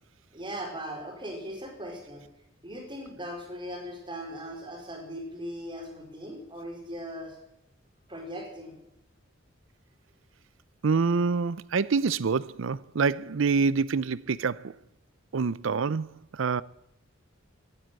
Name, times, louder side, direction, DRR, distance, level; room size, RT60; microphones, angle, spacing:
voice 1, 0.3-2.2 2.6-7.4 8.1-8.7, equal, 25° right, 4.3 m, -39 dB
voice 2, 10.8-14.7 15.3-16.6, right 5 dB, 75° right, 0.5 m, -26 dB
16.0 x 10.0 x 9.0 m
head